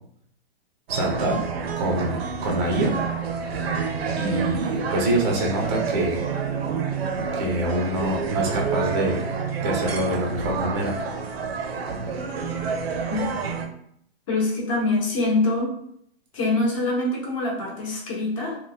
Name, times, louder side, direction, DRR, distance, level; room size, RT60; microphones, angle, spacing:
voice 1, 0.9-1.4 1.8-3.0 4.1-6.2 7.3-9.2 9.6-10.9, right 1 dB, 25° right, -1 dB, 0.5 m, -25 dB
sound 1, 0.9-13.7, right 5 dB, 75° right, 0.6 m, -28 dB
voice 2, 14.3-15.7 16.3-18.6, left 2 dB, 30° left, -3 dB, 0.9 m, -24 dB
2.7 x 2.2 x 3.6 m, 0.67 s
hypercardioid pair, 160°, 31 cm